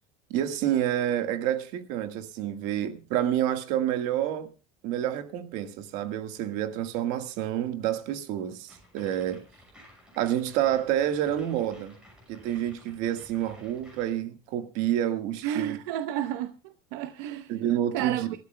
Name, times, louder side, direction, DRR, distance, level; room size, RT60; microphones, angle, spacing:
voice 1, 0.3-4.5 4.8-9.4 10.2-11.9 12.3-15.8 17.5-18.3, right 11 dB, 70° right, 1.6 m, -28 dB
sound 1, 8.7-14.1, equal, 5° right, 6.4 m, -54 dB
voice 2, 15.4-17.5 17.9-18.3, right 11 dB, 90° right, 0.8 m, -31 dB
27.0 x 13.0 x 2.2 m
cardioid pair, 165°, 13 cm